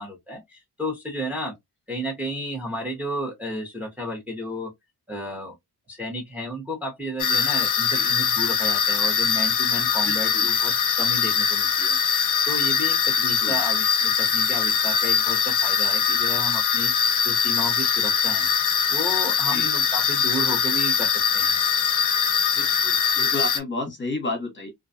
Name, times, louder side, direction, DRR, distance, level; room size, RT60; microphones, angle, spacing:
voice 1, 0.0-1.5 1.9-4.7 5.1-5.6 5.9-21.6, equal, 5° right, 0.7 m, -33 dB
sound 1, 7.2-23.6, left 6 dB, 50° left, 0.5 m, -22 dB
voice 2, 10.0-10.5 13.2-13.6 19.5-19.7 22.5-24.7, left 2 dB, 30° left, 0.9 m, -32 dB
2.5 x 2.2 x 2.5 m
wide cardioid pair, 140°, 39 cm